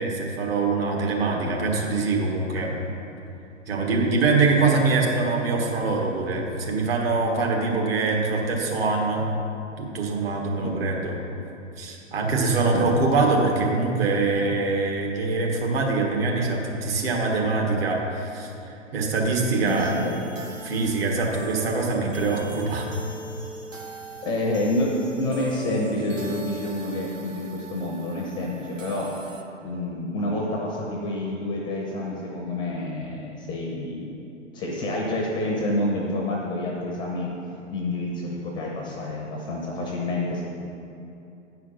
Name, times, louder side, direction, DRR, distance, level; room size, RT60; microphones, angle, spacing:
voice 1, 0.0-2.8 3.7-9.3 9.8-11.2 11.8-19.9 20.6-22.9, right 3 dB, 50° right, 0 dB, 1.6 m, -24 dB
voice 2, 19.6-20.1 23.7-23.9 24.2-29.1 29.6-34.1 34.5-37.3 37.7-40.4, left 1 dB, 10° left, -2 dB, 0.6 m, -28 dB
sound 1, 19.7-29.4, right 2 dB, 90° right, 0.9 m, -40 dB
9.3 x 5.0 x 5.6 m, 2.8 s
figure-of-eight pair, 115°, 38 cm